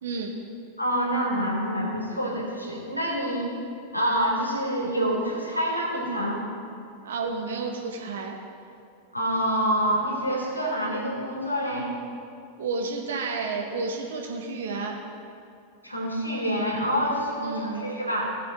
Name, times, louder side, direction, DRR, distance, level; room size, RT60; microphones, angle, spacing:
voice 1, 0.0-0.3 7.0-8.4 12.6-15.0 17.4-17.8, right 4 dB, 60° right, 1 dB, 1.8 m, -31 dB
voice 2, 0.8-3.5 3.9-6.5 9.1-11.9 15.8-18.3, equal, 90° left, -4 dB, 2.9 m, -27 dB
18.0 x 7.0 x 3.9 m, 2.5 s
figure-of-eight pair, 90°, 0 cm